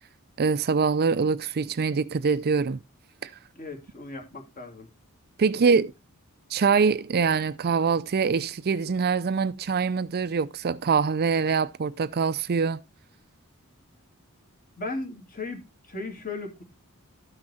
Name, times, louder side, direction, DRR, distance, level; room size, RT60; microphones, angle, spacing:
voice 1, 0.4-2.8 3.2-3.3 5.4-5.9 6.5-12.8, right 5 dB, 45° right, 0.5 m, -24 dB
voice 2, 3.5-4.9 5.7-5.8 14.8-16.6, left 3 dB, 40° left, 2.6 m, -37 dB
13.0 x 6.2 x 4.2 m
head